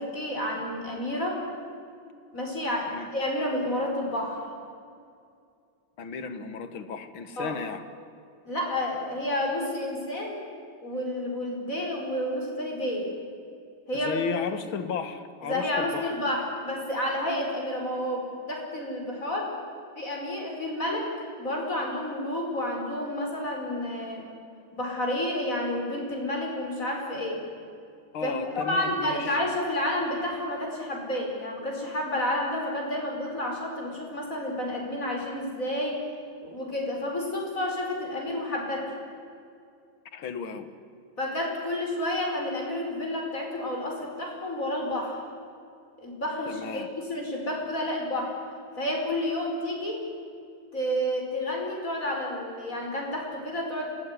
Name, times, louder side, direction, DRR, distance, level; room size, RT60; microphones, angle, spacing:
voice 1, 0.0-1.4 2.3-4.4 7.4-7.5 8.5-10.4 10.8-13.1 13.9-14.3 15.4-19.5 19.9-21.1 21.4-24.3 24.7-27.4 28.2-36.0 36.4-38.9 41.2-45.2 46.0-48.3 48.8-50.0 50.7-53.9, left 1 dB, 40° left, 0 dB, 5.6 m, -30 dB
voice 2, 6.0-7.8 13.9-16.1 28.1-29.4 40.1-40.7 46.5-46.9, left 6 dB, 75° left, 10 dB, 2.4 m, -34 dB
27.0 x 19.0 x 9.7 m, 2.4 s
omnidirectional pair, 2.2 m